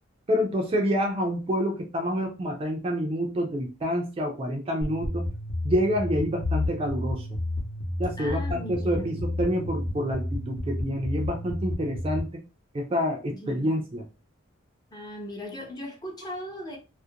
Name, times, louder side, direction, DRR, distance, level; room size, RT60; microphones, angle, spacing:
voice 1, 0.3-5.3 5.6-7.4 8.0-12.4 12.7-14.1, equal, 25° right, 0.3 m, -28 dB
sound 1, 4.8-12.2, left 1 dB, 60° left, 0.8 m, -31 dB
voice 2, 8.2-9.1 13.2-13.7 14.9-16.8, left 1 dB, 20° left, 0.6 m, -38 dB
2.4 x 2.1 x 2.7 m
head